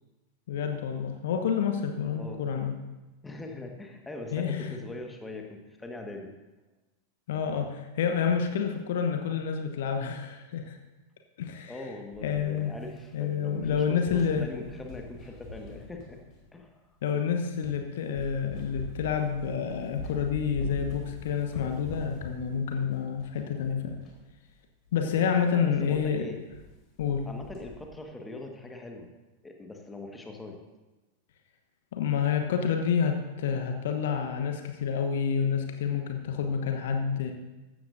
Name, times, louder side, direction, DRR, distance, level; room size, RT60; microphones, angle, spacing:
voice 1, 0.5-2.7 4.3-4.8 7.3-10.8 11.4-11.8 12.2-12.8 13.1-14.5 17.0-24.0 24.9-26.2 27.0-27.3 31.9-37.3, left 7 dB, 55° left, 5 dB, 1.0 m, -28 dB
voice 2, 3.2-6.3 11.7-16.2 16.5-16.8 25.5-26.4 27.2-29.1 29.4-30.6, left 2 dB, 10° left, 3 dB, 1.6 m, -41 dB
sound 1, 12.1-13.3 13.6-16.5 17.1-17.2 17.6-17.8 18.1-24.2 24.5-24.6 24.8-24.9 25.3-25.5 25.9-26.1 26.3-26.7 27.0-27.9, left 1 dB, 35° left, 3.6 m, -43 dB
15.5 x 12.5 x 2.7 m, 1.1 s
figure-of-eight pair, 90°, 0 cm